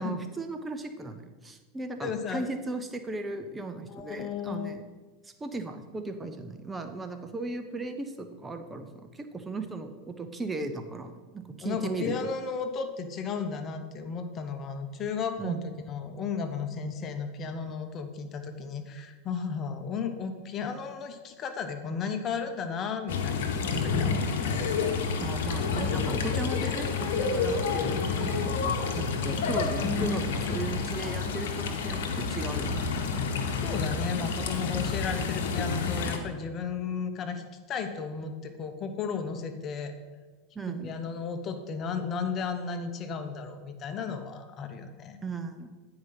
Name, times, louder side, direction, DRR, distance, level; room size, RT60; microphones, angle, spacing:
voice 1, 0.0-4.8 5.2-8.9 9.1-12.1 15.4-15.6 25.2-33.0 40.5-41.0 45.2-45.7, right 3 dB, 15° right, 7 dB, 0.8 m, -36 dB
voice 2, 2.0-2.5 3.9-4.8 11.6-24.7 33.6-37.4 37.7-39.9 40.8-45.2, left 5 dB, 40° left, 7 dB, 1.0 m, -34 dB
sound 1, 23.1-36.2, left 5 dB, 70° left, 1.1 m, -29 dB
9.4 x 4.8 x 5.7 m, 1.3 s
hypercardioid pair, 95°, 0 cm